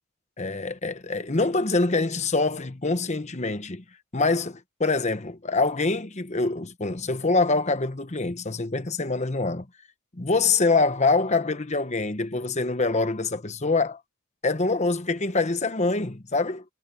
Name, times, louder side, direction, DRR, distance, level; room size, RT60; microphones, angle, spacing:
voice 1, 0.4-3.8 4.1-9.7 10.1-14.0 14.4-16.6, left 3 dB, 30° left, 1.1 m, -25 dB
head